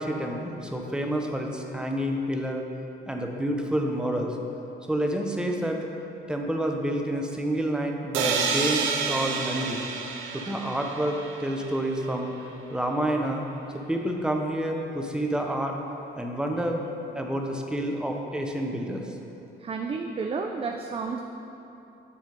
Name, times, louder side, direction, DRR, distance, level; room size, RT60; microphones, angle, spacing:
voice 1, 0.0-2.6 3.1-4.4 4.9-5.8 6.3-9.8 10.3-12.3 12.7-13.4 13.7-15.7 16.2-16.8 17.1-19.0, right 1 dB, 5° right, 2 dB, 0.7 m, -28 dB
sound 1, 8.1-11.9, right 5 dB, 85° right, 0.6 m, -29 dB
voice 2, 19.6-21.2, right 4 dB, 30° right, 3 dB, 0.4 m, -31 dB
9.1 x 3.5 x 5.2 m, 2.9 s
cardioid pair, 90°, 20 cm